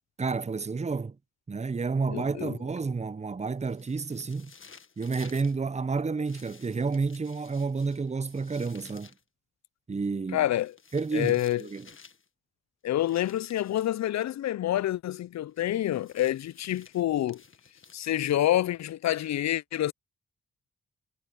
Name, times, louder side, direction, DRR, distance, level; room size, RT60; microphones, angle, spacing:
voice 1, 0.2-1.2 1.5-4.5 5.0-9.1 9.9-10.5 10.9-11.9, right 4 dB, 25° right, 0.7 m, -30 dB
voice 2, 2.1-2.6 10.3-10.7 11.1-11.6 12.8-17.4 17.9-19.9, left 13 dB, 65° left, 0.5 m, -27 dB
sound 1, 3.6-5.6 6.3-9.2 10.5-12.3 13.0-14.0 15.6-18.4, left 5 dB, 45° left, 1.6 m, -54 dB
cardioid pair, 55°, 29 cm